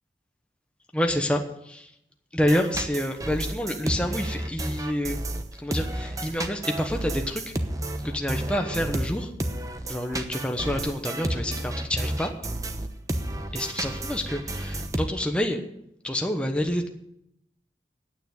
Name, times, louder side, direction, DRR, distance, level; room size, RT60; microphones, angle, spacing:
voice 1, 0.9-1.9 2.3-5.2 5.6-7.5 8.0-9.3 9.9-12.3 13.5-15.6 16.0-16.9, left 1 dB, 5° left, 3 dB, 1.0 m, -28 dB
sound 1, 2.4-15.1, right 1 dB, 20° right, 0.9 m, -31 dB
9.5 x 8.9 x 8.9 m, 0.78 s
head